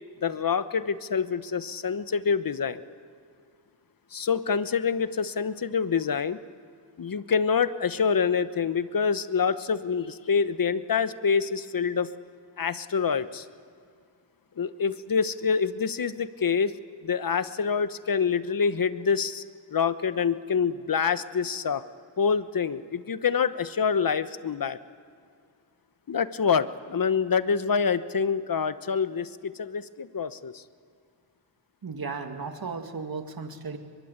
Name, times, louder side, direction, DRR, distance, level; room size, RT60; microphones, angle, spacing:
voice 1, 0.2-2.8 4.1-6.4 7.0-12.1 12.6-13.5 14.6-16.7 17.0-19.4 19.7-21.8 22.2-24.8 26.1-30.6, left 6 dB, 50° left, 13 dB, 1.1 m, -26 dB
voice 2, 31.8-33.8, right 4 dB, 55° right, 5 dB, 2.3 m, -35 dB
23.0 x 22.5 x 8.2 m, 2.3 s
cardioid pair, 50°, 43 cm